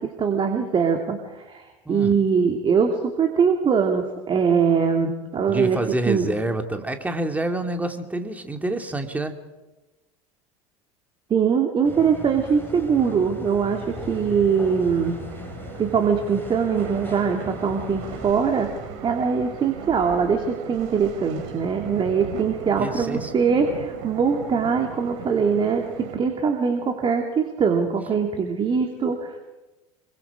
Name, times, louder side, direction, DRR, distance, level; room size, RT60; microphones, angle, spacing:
voice 1, 0.2-5.8 6.1-6.4 11.3-15.1 15.8-18.7 19.0-25.8 26.1-29.4, right 6 dB, 30° right, 4 dB, 2.7 m, -22 dB
voice 2, 1.9-2.2 5.5-9.4 22.8-23.3, right 1 dB, 10° right, 5 dB, 2.5 m, -27 dB
sound 1, 11.8-18.3, left 3 dB, 10° left, 4.9 m, -39 dB
sound 2, 13.7-26.2, right 7 dB, 55° right, 3.7 m, -38 dB
27.0 x 24.0 x 4.9 m, 1.1 s
figure-of-eight pair, 75°, 18 cm